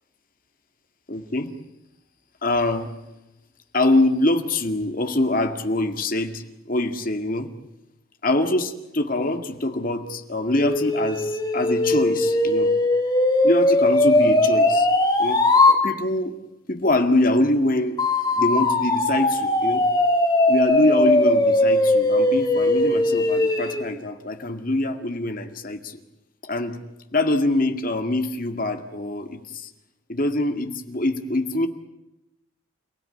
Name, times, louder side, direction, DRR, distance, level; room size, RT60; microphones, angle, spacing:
voice 1, 1.1-1.5 2.4-2.9 3.7-7.5 8.2-12.7 13.4-14.9 15.2-15.4 15.7-16.4 16.7-18.0 18.3-19.8 20.5-26.0 26.4-26.8 27.1-29.7 30.1-31.7, left 2 dB, 40° left, 6 dB, 2.0 m, -24 dB
sound 1, 10.6-15.8 18.0-23.8, left 2 dB, 20° left, 2.6 m, -19 dB
29.5 x 17.0 x 9.9 m, 0.92 s
head